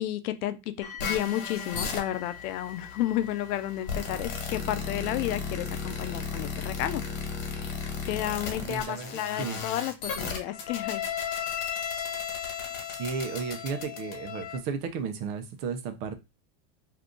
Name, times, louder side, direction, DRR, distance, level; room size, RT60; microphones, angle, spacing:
voice 1, 0.0-7.0 7.5-7.7 8.1-11.0, left 13 dB, 85° left, 0.6 m, -32 dB
sound 1, 0.8-13.7 14.5-14.6 15.2-15.3, left 8 dB, 30° left, 1.0 m, -50 dB
sound 2, 1.0-14.6, left 6 dB, 50° left, 1.4 m, -35 dB
voice 2, 8.6-9.6 13.0-16.1, right 6 dB, 50° right, 0.8 m, -34 dB
2.8 x 2.4 x 3.7 m
supercardioid pair, 130°, 44 cm